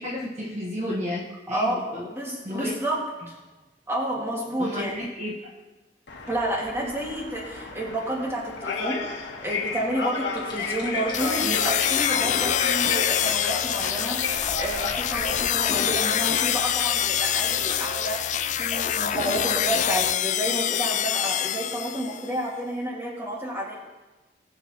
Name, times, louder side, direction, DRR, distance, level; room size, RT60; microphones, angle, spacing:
voice 1, 0.0-2.1 2.4-2.7 4.6-5.5, left 1 dB, 40° right, -4 dB, 1.4 m, -32 dB
voice 2, 1.5-3.0 3.3-3.4 3.9-5.0 6.3-18.2 18.6-23.8, right 1 dB, 15° right, -3 dB, 2.2 m, -30 dB
sound 1, 6.1-15.5, left 4 dB, 70° left, 1.5 m, -32 dB
sound 2, 10.4-19.6, left 3 dB, 25° left, 1.7 m, -39 dB
sound 3, 11.1-22.3, left 10 dB, 40° left, 0.4 m, -25 dB
19.5 x 6.6 x 3.1 m, 1.1 s
head